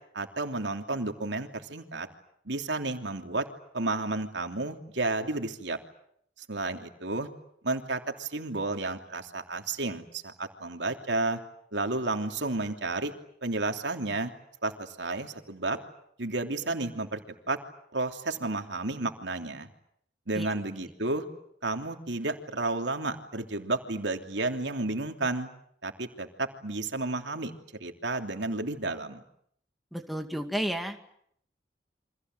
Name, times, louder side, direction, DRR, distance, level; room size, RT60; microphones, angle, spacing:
voice 1, 0.1-2.1 2.4-3.5 3.7-5.8 6.4-7.3 7.6-11.4 11.7-13.1 13.4-14.3 14.6-15.8 16.2-17.6 17.9-19.7 20.3-21.2 21.6-25.5 25.8-27.5 27.8-29.2, right 2 dB, 90° right, 5 dB, 3.1 m, -32 dB
voice 2, 29.9-31.0, equal, ahead, 4 dB, 2.2 m, -32 dB
29.0 x 25.5 x 8.0 m, 0.69 s
head